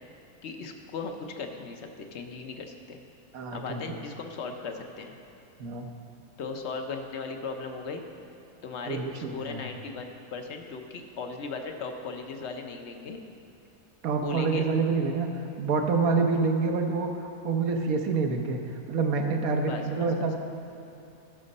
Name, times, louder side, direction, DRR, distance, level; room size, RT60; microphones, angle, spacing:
voice 1, 0.4-3.0 3.5-5.1 6.4-8.0 8.6-13.2 14.2-14.7 19.6-20.3, left 4 dB, 55° left, 4 dB, 0.9 m, -37 dB
voice 2, 3.3-4.0 5.6-5.9 8.9-9.6 14.0-20.4, right 4 dB, 70° right, 4 dB, 1.3 m, -27 dB
12.5 x 6.3 x 5.3 m, 2.8 s
omnidirectional pair, 1.6 m